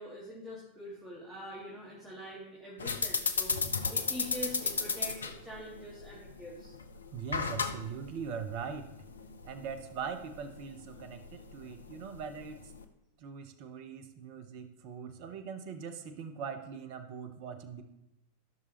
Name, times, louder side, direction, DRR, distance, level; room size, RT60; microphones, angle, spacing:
voice 1, 0.0-3.6 3.9-6.7, equal, 5° right, -6 dB, 1.9 m, -44 dB
sound 1, 2.8-12.8, left 4 dB, 75° left, 0.6 m, -35 dB
voice 2, 7.1-8.9 9.4-12.6 13.2-17.8, right 6 dB, 45° right, 9 dB, 0.8 m, -41 dB
13.5 x 6.1 x 3.0 m, 0.90 s
figure-of-eight pair, 90°, 0 cm